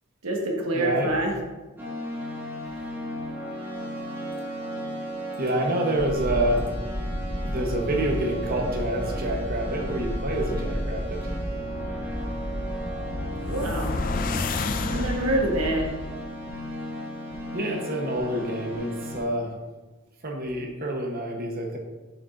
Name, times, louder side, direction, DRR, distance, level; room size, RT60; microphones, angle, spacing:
voice 1, 0.2-1.3 13.5-13.9 14.9-15.9, right 1 dB, 85° right, 0 dB, 1.3 m, -26 dB
voice 2, 0.7-1.1 5.4-6.7 7.4-11.2 17.5-19.5 20.2-21.8, right 1 dB, 40° right, 1 dB, 1.0 m, -27 dB
sound 1, 1.8-19.2, equal, 10° right, 1.1 m, -35 dB
sound 2, 6.0-15.9, equal, 15° left, 0.7 m, -32 dB
sound 3, 12.8-15.7, left 4 dB, 40° left, 0.3 m, -31 dB
6.9 x 6.1 x 2.5 m, 1.2 s
head